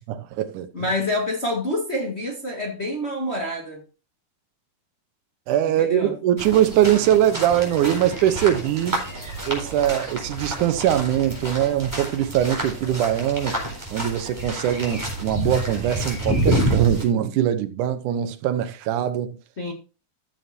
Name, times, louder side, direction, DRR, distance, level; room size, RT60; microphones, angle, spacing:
voice 1, 0.1-0.7 5.5-9.0 9.5-13.5 13.9-19.4, right 11 dB, 85° right, 2.3 m, -22 dB
voice 2, 0.7-3.8 5.6-6.1 19.6-19.7, left 1 dB, 30° left, 1.3 m, -27 dB
sound 1, 6.4-17.0, right 1 dB, 5° right, 3.8 m, -28 dB
14.5 x 7.4 x 2.7 m
omnidirectional pair, 3.5 m